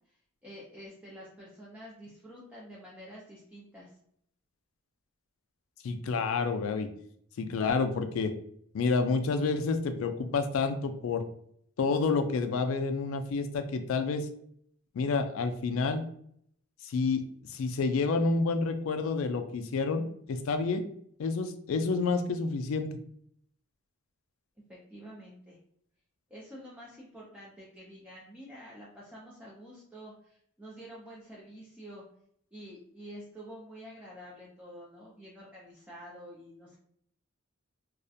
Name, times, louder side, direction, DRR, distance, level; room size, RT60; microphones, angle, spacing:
voice 1, 0.4-3.9 24.9-25.6 26.3-32.0 32.5-36.8, equal, 5° right, -6 dB, 0.4 m, -48 dB
voice 2, 5.8-6.9 7.4-8.3 8.7-11.2 11.8-14.3 14.9-16.0 16.8-17.2 17.5-20.8 21.2-22.9, left 4 dB, 75° left, 7 dB, 0.3 m, -29 dB
2.3 x 2.1 x 2.6 m, 0.67 s
head